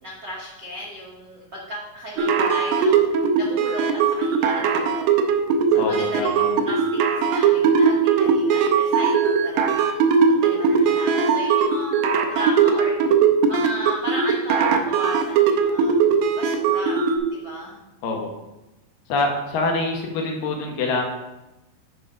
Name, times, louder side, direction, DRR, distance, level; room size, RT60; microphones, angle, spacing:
voice 1, 0.0-3.1 3.4-5.1 5.7-12.9 13.5-15.9 16.4-17.8, equal, 70° right, -3 dB, 1.0 m, -35 dB
sound 1, 2.2-17.2, right 6 dB, 90° right, 2.4 m, -19 dB
voice 2, 5.7-6.5 18.0-18.3 19.1-21.0, left 3 dB, 85° left, 1 dB, 2.9 m, -25 dB
10.5 x 4.0 x 4.8 m, 0.97 s
omnidirectional pair, 3.8 m